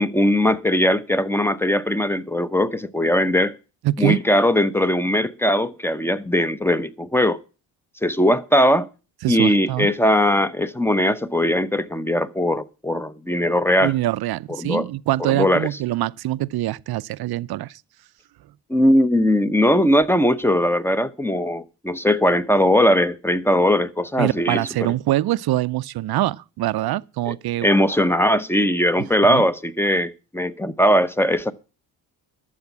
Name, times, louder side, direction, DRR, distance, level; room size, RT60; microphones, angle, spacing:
voice 1, 0.0-3.5 4.0-7.4 8.0-8.9 9.3-13.9 14.6-14.9 15.3-15.7 18.7-24.9 27.3-27.4 27.6-31.5, left 1 dB, 5° left, 0.8 m, -19 dB
voice 2, 3.8-4.2 9.2-9.9 13.8-17.8 24.2-27.7 29.2-29.4, right 15 dB, 60° right, 0.6 m, -24 dB
12.0 x 7.2 x 7.2 m
supercardioid pair, 75°, 42 cm